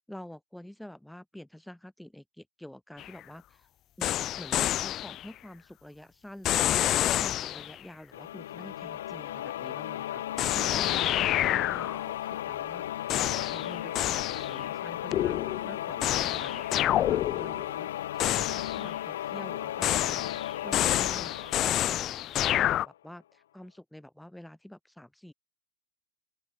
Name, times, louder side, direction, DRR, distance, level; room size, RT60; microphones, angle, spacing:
voice 1, 0.1-3.7 4.0-22.2 22.6-25.3, left 1 dB, ahead, 4.8 m, -47 dB
sound 1, 3.0-3.1 4.0-5.3 6.4-7.8 10.4-12.2 13.1-14.6 15.1-17.8 18.2-18.9 19.8-22.9, left 13 dB, 30° left, 1.0 m, -28 dB
sound 2, 8.1-22.7, left 12 dB, 60° left, 0.6 m, -36 dB
open air
figure-of-eight pair, 90°, 0 cm